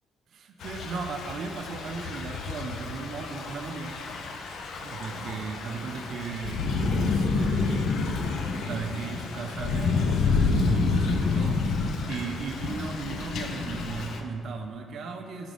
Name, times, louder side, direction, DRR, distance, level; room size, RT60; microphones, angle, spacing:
voice 1, 0.3-4.0 4.8-15.5, right 5 dB, 45° right, 5 dB, 0.5 m, -36 dB
Thunder / Rain, 0.6-14.2, left 4 dB, 50° left, 0.4 m, -29 dB
6.2 x 3.8 x 4.9 m, 2.4 s
cardioid pair, 175°, 0 cm